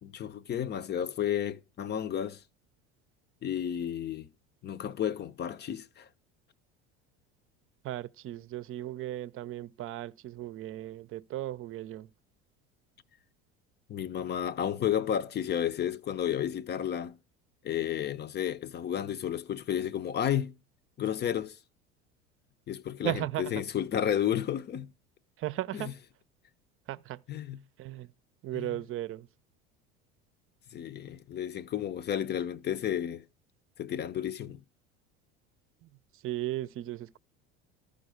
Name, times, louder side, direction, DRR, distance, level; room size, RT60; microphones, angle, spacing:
voice 1, 0.0-2.4 3.4-4.3 4.6-6.1 13.9-17.2 17.6-20.5 21.0-21.6 22.7-24.9 25.7-25.9 27.3-27.6 28.5-28.7 30.7-33.2 33.8-34.6, left 10 dB, 35° left, 0.7 m, -32 dB
voice 2, 7.8-12.1 23.0-23.6 25.4-25.9 26.9-27.2 27.8-28.1 28.4-29.3 35.8-37.2, right 14 dB, 45° right, 0.6 m, -36 dB
13.5 x 5.2 x 6.5 m
supercardioid pair, 90°, 29 cm